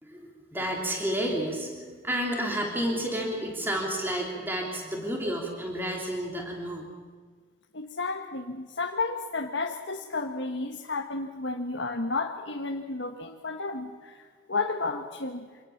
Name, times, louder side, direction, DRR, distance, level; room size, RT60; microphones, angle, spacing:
voice 1, 0.0-6.9, equal, 10° right, 0 dB, 3.3 m, -31 dB
voice 2, 7.7-15.5, left 3 dB, 70° left, 2 dB, 1.4 m, -32 dB
26.0 x 19.5 x 7.2 m, 1.5 s
head